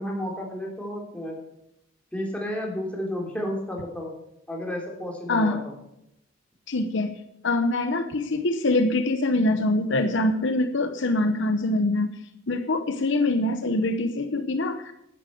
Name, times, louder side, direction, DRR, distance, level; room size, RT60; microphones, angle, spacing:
voice 1, 0.0-1.4 2.1-4.1 4.5-5.6, equal, 5° left, -1 dB, 3.3 m, -31 dB
voice 2, 5.3-5.6 6.7-7.1 7.4-12.2 12.5-14.9, left 2 dB, 60° left, 7 dB, 0.9 m, -24 dB
10.5 x 10.0 x 7.7 m, 0.81 s
head